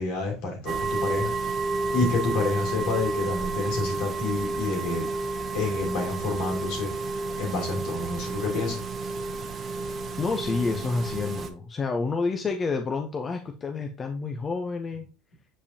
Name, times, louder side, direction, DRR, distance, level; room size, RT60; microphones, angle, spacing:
voice 1, 0.0-1.5 1.9-5.0 5.5-6.9 7.4-9.1, left 3 dB, 70° left, 2.9 m, -29 dB
sound 1, 0.7-11.5, right 3 dB, 35° right, 0.8 m, -31 dB
voice 2, 10.2-15.1, left 4 dB, 30° left, 0.8 m, -29 dB
6.9 x 5.1 x 2.8 m
hypercardioid pair, 85°, 0 cm